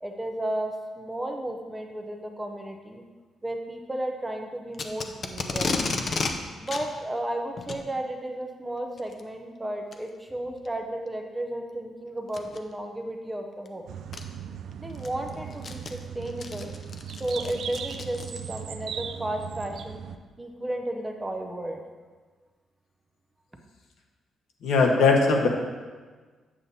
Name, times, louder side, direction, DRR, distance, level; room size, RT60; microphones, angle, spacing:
voice 1, 0.0-3.0 3.4-5.8 6.6-13.8 14.8-16.7 17.2-20.0 20.4-21.8, right 1 dB, 10° right, 3 dB, 0.5 m, -33 dB
Packing tape duct tape, 4.7-6.3 6.7-6.8 7.6-7.8 9.0-9.2 9.9-10.0 10.6-10.7 12.3-12.6 13.7-13.8 14.1-14.2 14.7-18.6, left 4 dB, 35° left, 0.5 m, -32 dB
sound 1, 13.9-20.2, right 8 dB, 65° right, 0.4 m, -38 dB
voice 2, 24.6-25.5, left 4 dB, 80° left, 1 dB, 1.0 m, -19 dB
8.4 x 7.5 x 2.7 m, 1.4 s
cardioid pair, 170°, 0 cm